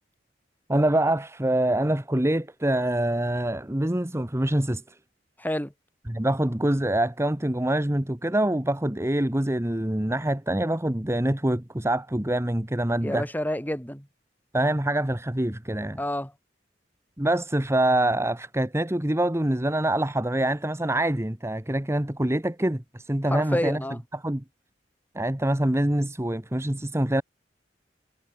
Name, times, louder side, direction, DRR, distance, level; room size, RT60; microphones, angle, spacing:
voice 1, 0.7-4.8 6.1-13.2 14.5-16.0 17.2-23.8 24.1-24.4 25.1-27.2, right 1 dB, 15° right, 1.2 m, -25 dB
voice 2, 5.4-5.7 13.0-14.1 16.0-16.3 23.3-24.0, left 1 dB, 10° left, 6.3 m, -29 dB
head